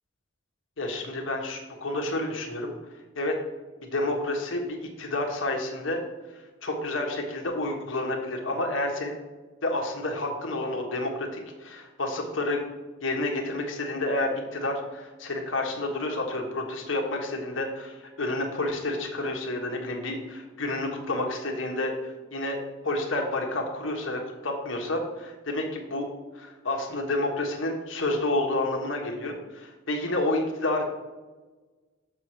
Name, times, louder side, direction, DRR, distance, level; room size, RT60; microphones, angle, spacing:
voice 1, 0.8-2.7 3.1-3.3 3.8-6.0 6.3-9.1 9.6-12.6 13.0-26.1 26.3-30.8, left 2 dB, 75° left, 2 dB, 1.4 m, -30 dB
6.8 x 4.9 x 6.1 m, 1.3 s
head